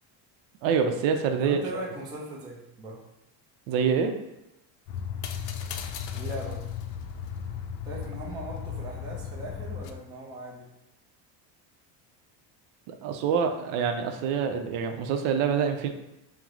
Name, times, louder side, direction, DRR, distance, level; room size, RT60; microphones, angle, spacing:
voice 1, 0.6-1.6 3.7-4.2 12.9-15.9, right 6 dB, 70° right, 6 dB, 0.6 m, -26 dB
voice 2, 1.4-3.0 6.1-6.6 7.8-10.7, right 1 dB, 10° right, -4 dB, 0.3 m, -39 dB
sound 1, 4.9-9.9, left 7 dB, 70° left, 0.5 m, -35 dB
4.5 x 2.1 x 3.6 m, 0.92 s
cardioid pair, 150°, 49 cm